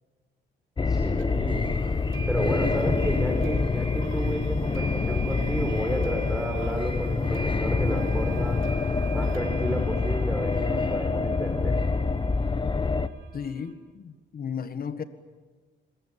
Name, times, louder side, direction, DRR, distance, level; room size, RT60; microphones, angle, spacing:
sound 1, 0.8-13.1, left 4 dB, 25° left, 1.0 m, -26 dB
voice 1, 0.9-1.7 2.3-8.6 9.1-11.8, equal, ahead, 1 dB, 5.2 m, -31 dB
sound 2, 1.2-1.3 2.1-13.7, right 5 dB, 80° right, 3.8 m, -43 dB
voice 2, 13.3-15.0, left 7 dB, 50° left, 11 dB, 1.7 m, -34 dB
26.5 x 22.0 x 9.1 m, 1.4 s
cardioid pair, 90°, 20 cm